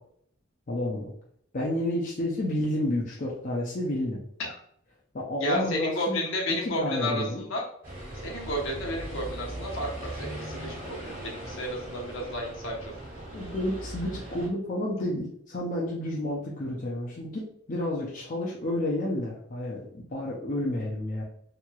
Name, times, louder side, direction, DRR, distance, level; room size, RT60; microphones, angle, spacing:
voice 1, 0.7-1.1 1.5-4.2 5.1-6.3 6.6-7.4 13.3-21.2, left 1 dB, 40° left, -4 dB, 0.5 m, -30 dB
voice 2, 5.4-7.6 8.2-12.9, equal, 70° left, -1 dB, 0.9 m, -32 dB
sound 1, 7.8-14.5, right 1 dB, 40° right, 1.3 m, -39 dB
3.0 x 2.9 x 2.3 m, 0.67 s
head